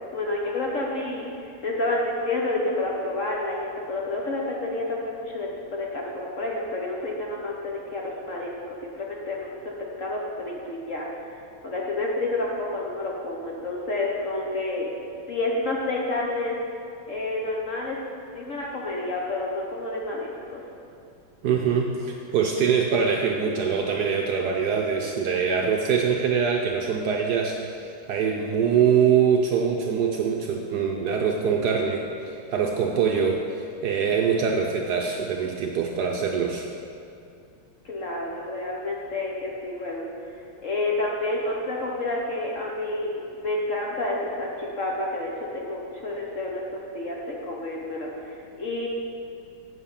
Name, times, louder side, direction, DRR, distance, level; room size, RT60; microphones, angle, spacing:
voice 1, 0.1-1.3 1.6-8.5 8.9-9.7 10.0-11.1 11.6-14.9 15.3-16.6 17.1-18.0 18.3-20.6 37.8-40.1 40.6-48.9, left 2 dB, 50° left, -2 dB, 1.1 m, -29 dB
voice 2, 21.4-33.4 33.8-36.7, right 6 dB, 70° right, 1 dB, 1.0 m, -24 dB
8.7 x 6.4 x 5.5 m, 2.5 s
omnidirectional pair, 2.2 m